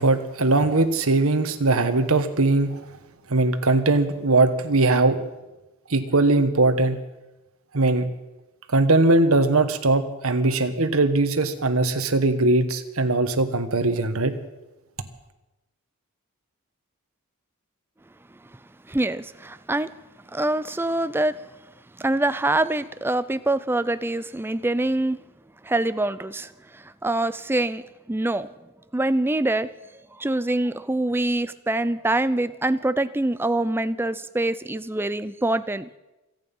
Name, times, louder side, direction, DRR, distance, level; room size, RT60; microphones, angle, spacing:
voice 1, 0.0-2.7 3.3-5.2 5.9-7.0 7.7-8.1 8.7-14.3, right 2 dB, 70° right, 8 dB, 1.4 m, -20 dB
voice 2, 18.9-19.9 20.3-21.4 22.0-25.2 25.6-27.8 28.1-28.5 28.9-29.7 30.2-35.9, right 2 dB, 10° right, 14 dB, 0.4 m, -25 dB
27.0 x 9.3 x 5.5 m, 1.0 s
head